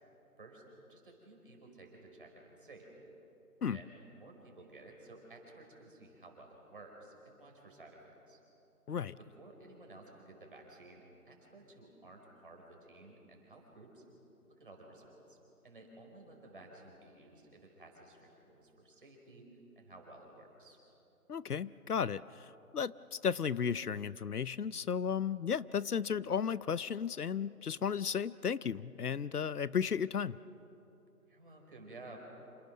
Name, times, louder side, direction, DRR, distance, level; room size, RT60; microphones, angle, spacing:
voice 1, 0.9-2.9 3.6-8.4 9.1-14.0 14.5-15.4 15.6-20.8 31.3-32.2, right 2 dB, 35° right, 1 dB, 4.9 m, -55 dB
voice 2, 8.9-9.2 21.3-30.4, left 7 dB, 75° left, 19 dB, 0.7 m, -34 dB
28.0 x 28.0 x 6.5 m, 2.9 s
figure-of-eight pair, 175°, 46 cm